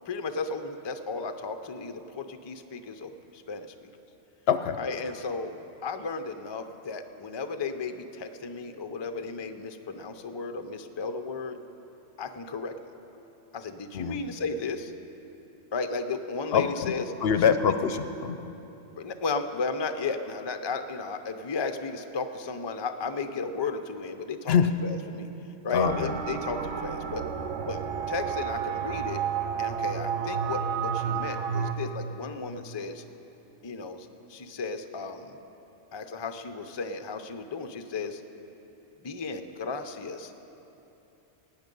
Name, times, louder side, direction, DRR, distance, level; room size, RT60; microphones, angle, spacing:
voice 1, 0.1-3.7 4.8-5.5 5.8-11.6 12.2-12.7 13.5-14.9 15.7-17.0 19.0-24.5 24.8-25.3 25.6-27.2 27.7-27.8 28.1-29.2 29.6-33.0 33.6-35.4 35.9-38.2 39.0-40.3, left 4 dB, 40° left, 7 dB, 0.3 m, -34 dB
voice 2, 4.5-4.8 13.9-14.2 16.5-16.9 17.2-18.5 24.5-24.7 25.7-26.1, left 7 dB, 65° left, 10 dB, 0.7 m, -24 dB
sound 1, 25.8-31.7, right 7 dB, 90° right, 1.1 m, -31 dB
18.0 x 8.8 x 5.3 m, 3.0 s
omnidirectional pair, 1.2 m